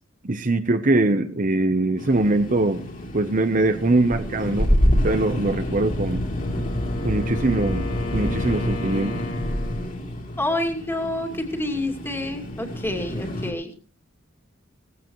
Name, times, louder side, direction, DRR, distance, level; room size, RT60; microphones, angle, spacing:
voice 1, 0.2-2.9 3.1-6.2 7.0-7.9 8.1-9.2, right 2 dB, 40° right, 9 dB, 0.8 m, -22 dB
sound 1, 2.0-13.5, equal, 40° left, 3.0 m, -27 dB
Wind instrument woodwind instrument, 6.2-10.1, left 3 dB, 75° left, 5.3 m, -35 dB
voice 2, 10.4-13.7, left 1 dB, 10° left, 4 dB, 2.4 m, -28 dB
19.0 x 15.0 x 3.1 m, 0.37 s
head